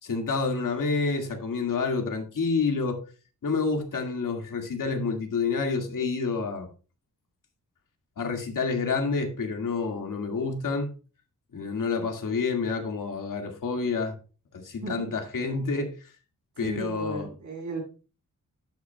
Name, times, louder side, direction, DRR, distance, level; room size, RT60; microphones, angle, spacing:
voice 1, 0.0-3.0 3.4-6.7 8.2-10.9 11.5-14.2 14.5-16.1 16.6-17.3, left 4 dB, 75° left, 2.1 m, -28 dB
voice 2, 14.8-15.2 16.6-17.8, right 3 dB, 65° right, 5.8 m, -36 dB
11.5 x 8.7 x 2.3 m
wide cardioid pair, 135°, 33 cm